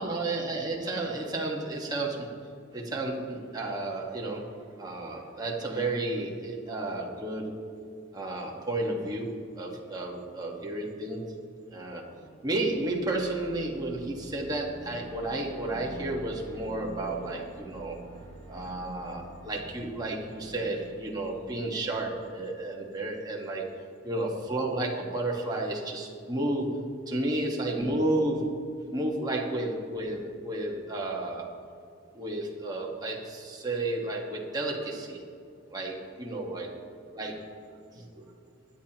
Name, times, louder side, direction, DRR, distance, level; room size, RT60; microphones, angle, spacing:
voice 1, 0.0-2.3 2.7-4.5 4.8-7.6 8.1-9.3 9.6-11.3 11.7-12.0 12.4-18.0 18.5-23.6 24.0-28.6 28.9-31.5 32.1-35.2 35.7-35.9 36.2-36.7 37.1-38.2, right 2 dB, 20° right, -2 dB, 1.4 m, -32 dB
sound 1, 12.1-22.3, right 2 dB, 35° left, 2.6 m, -47 dB
23.5 x 8.9 x 3.0 m, 2.5 s
head